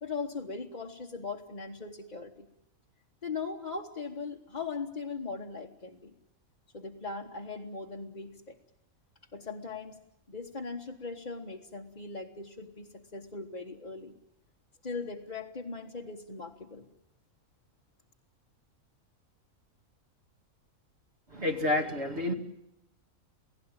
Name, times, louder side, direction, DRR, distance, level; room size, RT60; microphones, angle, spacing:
voice 1, 0.0-2.5 3.2-6.1 6.7-8.6 9.3-10.0 10.3-14.2 14.8-16.9, left 4 dB, 30° left, -1 dB, 1.3 m, -39 dB
voice 2, 21.3-22.3, left 2 dB, 50° right, 4 dB, 2.6 m, -29 dB
28.5 x 17.5 x 8.9 m, 0.83 s
omnidirectional pair, 1.5 m